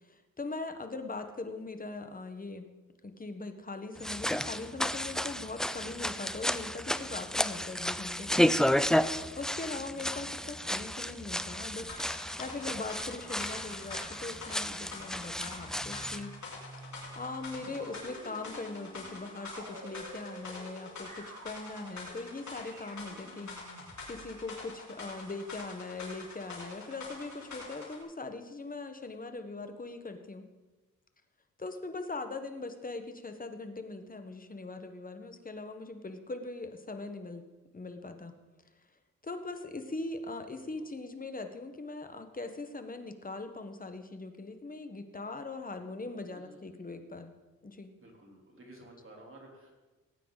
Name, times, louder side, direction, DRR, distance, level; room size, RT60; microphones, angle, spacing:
voice 1, 0.0-2.7 3.0-8.5 8.9-16.4 17.1-23.7 24.1-30.4 31.6-37.4 37.7-38.3 39.2-47.3 47.6-47.9, left 3 dB, 25° left, 7 dB, 1.3 m, -41 dB
sound 1, 4.0-16.2, equal, ahead, 0.4 m, -32 dB
sound 2, 11.9-28.0, left 3 dB, 55° left, 3.9 m, -46 dB
sound 3, 15.7-24.3, right 2 dB, 65° right, 5.3 m, -50 dB
voice 2, 46.3-46.6 48.0-49.7, right 1 dB, 40° right, -1 dB, 3.6 m, -53 dB
18.0 x 9.1 x 4.0 m, 1.2 s
cardioid pair, 85°, 33 cm